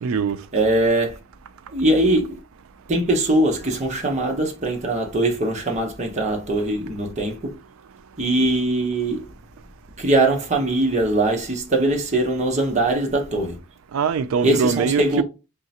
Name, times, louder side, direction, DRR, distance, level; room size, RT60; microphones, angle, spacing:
voice 1, 0.0-0.4 13.9-15.2, right 6 dB, 85° right, 0.4 m, -22 dB
voice 2, 0.5-1.2 1.7-2.4 2.9-7.5 8.2-9.3 10.0-13.6 14.4-15.2, right 2 dB, 35° right, 0.9 m, -21 dB
3.7 x 3.2 x 2.8 m
head